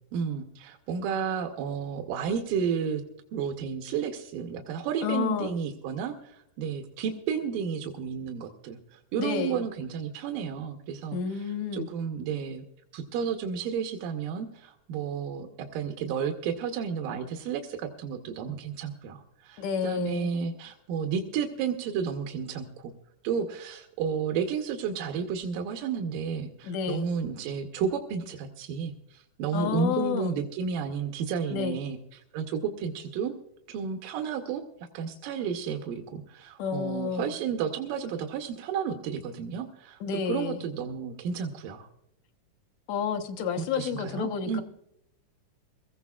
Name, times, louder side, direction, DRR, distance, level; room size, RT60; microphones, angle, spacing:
voice 1, 0.1-3.0 3.3-11.2 11.7-12.6 12.9-22.9 23.2-32.0 32.3-33.4 33.7-34.6 34.9-40.0 40.3-41.9 43.6-44.6, right 7 dB, 85° right, 4 dB, 2.6 m, -32 dB
voice 2, 5.0-5.5 9.2-9.7 11.1-11.9 19.6-20.3 26.6-27.1 29.5-30.4 31.5-31.8 36.6-37.3 40.0-40.6 42.9-44.6, left 7 dB, 70° left, 8 dB, 1.9 m, -30 dB
23.5 x 15.0 x 2.4 m, 0.82 s
omnidirectional pair, 3.8 m